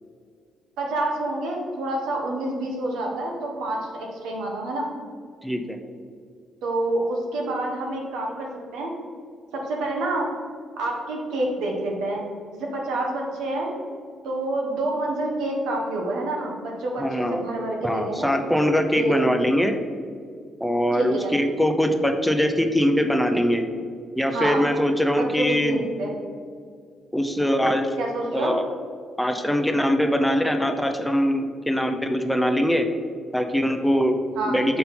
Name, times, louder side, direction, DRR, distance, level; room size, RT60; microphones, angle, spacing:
voice 1, 0.8-4.9 6.6-8.9 9.5-10.3 10.8-12.2 12.5-13.7 14.2-18.3 18.9-19.3 20.9-21.3 24.3-24.6 25.1-26.1 28.0-28.6 34.3-34.6, right 2 dB, 90° right, -1 dB, 1.2 m, -27 dB
voice 2, 5.4-5.8 17.0-17.4 17.8-19.8 20.6-23.6 24.2-25.8 27.1-27.9 28.3-28.6 29.2-32.9 33.3-34.2 34.4-34.8, equal, 5° left, 5 dB, 0.6 m, -22 dB
5.5 x 4.1 x 4.3 m, 2.1 s
cardioid pair, 90°, 0 cm